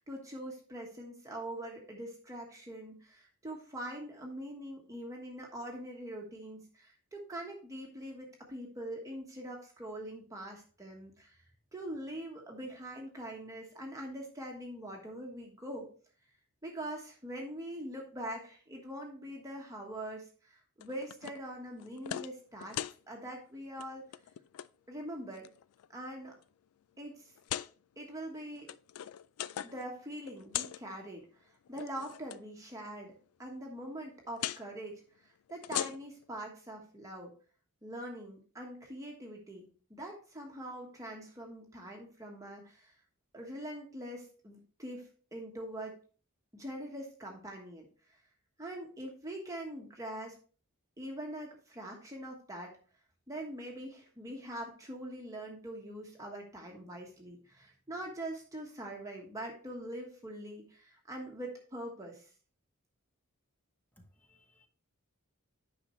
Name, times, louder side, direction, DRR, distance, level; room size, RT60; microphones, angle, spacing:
voice 1, 0.0-11.4 11.7-15.9 16.6-22.8 23.1-24.0 24.9-25.5 25.9-26.3 27.0-27.3 28.0-28.7 29.6-33.1 33.4-37.3 37.8-42.9 43.3-46.0 46.5-48.2 48.6-50.4 51.0-52.8 53.3-62.3, right 1 dB, 15° right, 1.3 m, -43 dB
sound 1, 20.8-21.4 21.8-22.3 22.6-23.0 23.7-23.9 24.1-24.7 25.3-25.9 26.4-26.5 27.4-27.7 28.5-29.9 30.1-30.8 31.7-32.4 34.4-34.6 35.5-36.2, left 12 dB, 85° left, 0.3 m, -39 dB
voice 2, 64.0-64.7, left 1 dB, 10° left, 1.2 m, -63 dB
9.8 x 5.8 x 3.1 m
head